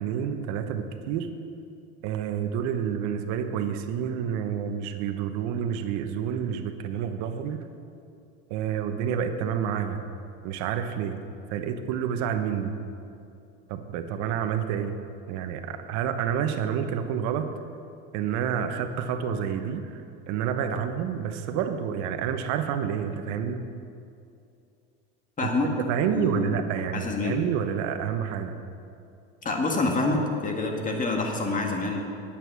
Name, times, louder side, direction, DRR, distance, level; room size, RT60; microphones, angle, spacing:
voice 1, 0.0-1.3 2.0-7.6 8.5-10.0 10.4-12.8 13.7-15.0 15.3-17.5 18.1-23.6 25.4-28.6, right 8 dB, 65° right, 8 dB, 1.0 m, -29 dB
voice 2, 25.4-25.7 26.1-26.6 26.9-27.4 29.4-32.0, left 3 dB, 25° left, 1 dB, 1.8 m, -27 dB
9.1 x 8.7 x 6.2 m, 2.5 s
supercardioid pair, 105°, 32 cm